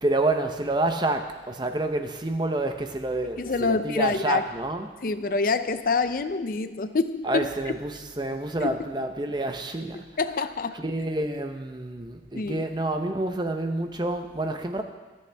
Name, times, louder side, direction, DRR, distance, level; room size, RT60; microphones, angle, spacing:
voice 1, 0.0-4.9 7.2-10.1 10.7-14.8, right 2 dB, 25° right, 6 dB, 0.8 m, -28 dB
voice 2, 3.4-4.4 5.0-7.5 8.6-8.7 10.2-10.8 12.3-12.7, left 4 dB, 50° left, 11 dB, 0.5 m, -26 dB
25.5 x 8.5 x 3.4 m, 1.2 s
head